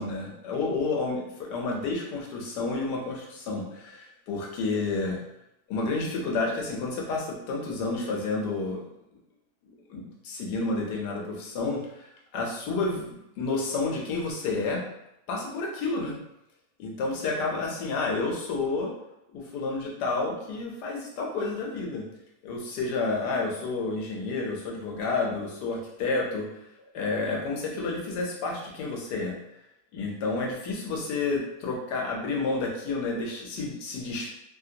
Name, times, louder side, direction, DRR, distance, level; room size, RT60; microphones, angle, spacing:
voice 1, 0.0-5.2 5.7-8.8 9.9-14.8 15.3-16.2 16.8-18.9 19.3-22.0 22.4-26.5 26.9-29.3 29.9-34.3, left 3 dB, 80° left, -1 dB, 1.3 m, -30 dB
3.2 x 2.5 x 2.8 m, 0.88 s
omnidirectional pair, 1.8 m